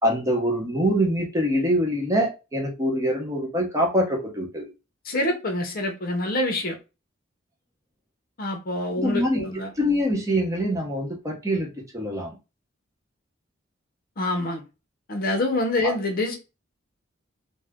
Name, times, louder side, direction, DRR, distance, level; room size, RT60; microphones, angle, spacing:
voice 1, 0.0-4.7 8.9-9.4 9.8-12.4 15.8-15.9, equal, 15° right, 0.9 m, -24 dB
voice 2, 5.1-6.8 8.4-9.7 14.2-14.6 15.1-16.4, left 2 dB, 50° left, 0.7 m, -26 dB
2.5 x 2.1 x 3.4 m
head